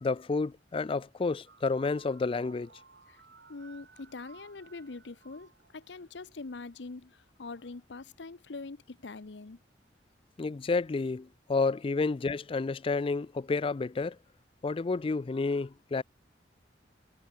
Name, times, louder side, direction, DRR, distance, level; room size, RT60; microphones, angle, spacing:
voice 1, 0.0-2.7 10.4-14.2 14.6-16.0, left 3 dB, 30° left, 0.4 m, -30 dB
sound 1, 1.4-6.5, right 4 dB, 70° right, 2.8 m, -57 dB
voice 2, 3.5-9.6, left 3 dB, 85° left, 0.8 m, -44 dB
head